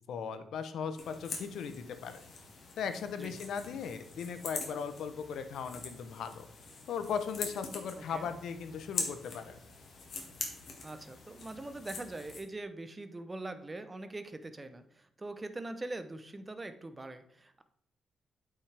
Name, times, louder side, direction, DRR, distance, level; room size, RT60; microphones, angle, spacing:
voice 1, 0.1-2.2 2.8-6.5 6.9-9.6, left 6 dB, 80° left, 10 dB, 0.7 m, -38 dB
sound 1, 1.0-12.4, left 4 dB, 55° left, 1.8 m, -43 dB
voice 2, 10.8-17.6, right 2 dB, 20° right, 10 dB, 0.7 m, -43 dB
8.4 x 5.6 x 3.4 m, 0.73 s
cardioid pair, 110°, 0 cm